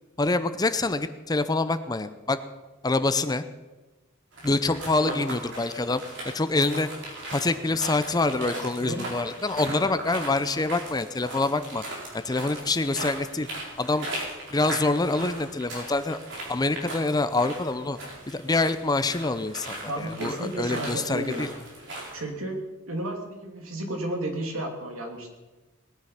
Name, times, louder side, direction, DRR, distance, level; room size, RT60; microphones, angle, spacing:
voice 1, 0.2-2.4 2.8-3.4 4.4-6.9 7.3-11.8 12.1-13.5 13.8-14.1 14.5-16.2 16.5-18.0 18.3-21.5, left 2 dB, 20° left, 12 dB, 0.6 m, -26 dB
sound 1, 4.3-22.2, right 1 dB, 60° right, 4.4 m, -38 dB
voice 2, 19.9-21.5 22.1-22.6 22.9-25.3, right 1 dB, 85° right, 2 dB, 2.8 m, -33 dB
19.5 x 9.4 x 5.7 m, 1.2 s
head